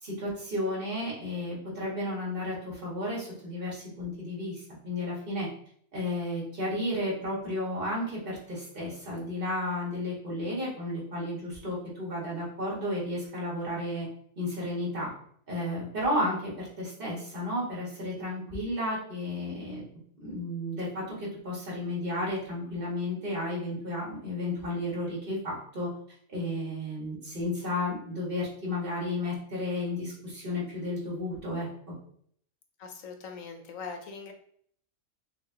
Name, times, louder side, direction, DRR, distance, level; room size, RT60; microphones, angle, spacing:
voice 1, 0.0-5.5 5.9-14.1 14.4-15.1 15.5-19.8 20.2-25.9 26.3-31.9, left 1 dB, 45° right, -5 dB, 1.9 m, -33 dB
voice 2, 32.8-34.3, left 5 dB, 80° left, 4 dB, 1.1 m, -41 dB
6.1 x 2.4 x 2.8 m, 0.62 s
omnidirectional pair, 1.4 m